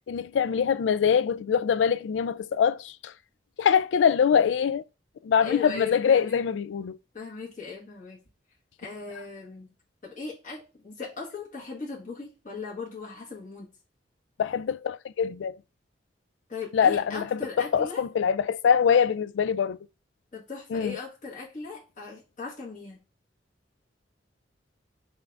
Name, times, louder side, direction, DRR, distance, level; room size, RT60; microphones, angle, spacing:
voice 1, 0.1-3.1 3.6-4.8 5.2-7.0 14.4-15.5 16.7-19.8 20.7-21.0, left 7 dB, 90° left, 0.3 m, -24 dB
voice 2, 5.4-6.6 7.1-8.2 8.8-9.7 10.0-13.7 16.5-18.0 20.3-23.0, left 4 dB, 45° left, 1.5 m, -38 dB
5.5 x 2.6 x 3.3 m
head